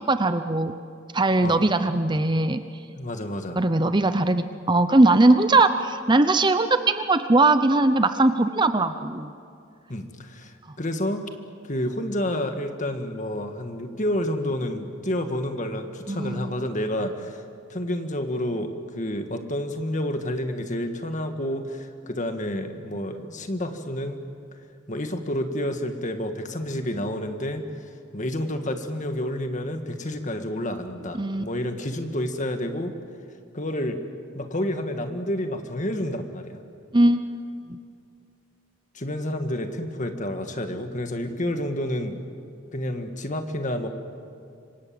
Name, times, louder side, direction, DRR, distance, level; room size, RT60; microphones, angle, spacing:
voice 1, 0.1-0.7 1.1-2.6 3.6-9.3 16.1-16.5 31.2-31.4 36.9-37.2, right 2 dB, 20° right, 10 dB, 0.7 m, -20 dB
voice 2, 3.0-3.6 9.9-11.3 11.7-17.4 17.7-24.2 24.9-32.9 33.5-34.0 34.3-36.6 38.9-42.3 42.7-43.9, left 1 dB, 40° left, 6 dB, 1.9 m, -29 dB
26.5 x 25.0 x 7.8 m, 2.4 s
head